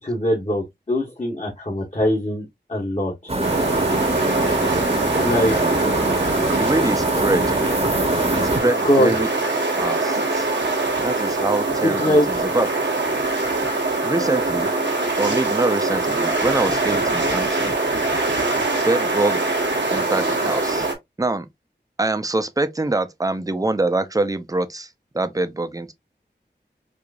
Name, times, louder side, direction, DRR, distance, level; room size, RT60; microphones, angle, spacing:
voice 1, 0.0-3.4 5.1-5.6 8.8-9.1 11.8-12.3, left 1 dB, 40° left, 1.4 m, -22 dB
sound 1, 3.3-8.6, right 1 dB, 35° right, 1.0 m, -23 dB
sound 2, 3.4-20.9, right 2 dB, 80° right, 1.2 m, -23 dB
voice 2, 5.5-6.1 6.6-7.6 8.3-9.3 9.6-10.5 11.0-12.7 14.0-14.7 15.2-17.7 18.8-19.6 19.9-20.9 21.2-21.5 22.0-24.9 25.1-25.9, right 2 dB, 20° right, 0.6 m, -24 dB
4.7 x 2.6 x 2.5 m
wide cardioid pair, 50°, 18 cm